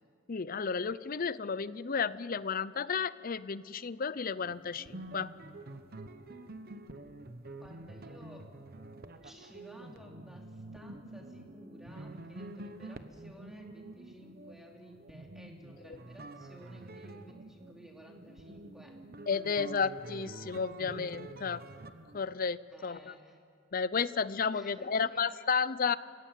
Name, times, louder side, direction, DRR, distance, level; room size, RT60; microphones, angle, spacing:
voice 1, 0.3-5.3 19.3-21.6 22.1-23.1 23.7-26.0, left 5 dB, 45° left, 17 dB, 0.6 m, -32 dB
sound 1, 4.4-22.2, right 2 dB, 50° right, 1.1 m, -47 dB
voice 2, 7.6-8.5 9.2-19.0 22.7-23.4 24.5-25.3, equal, ahead, 0 dB, 2.9 m, -54 dB
30.0 x 17.0 x 7.5 m, 2.4 s
head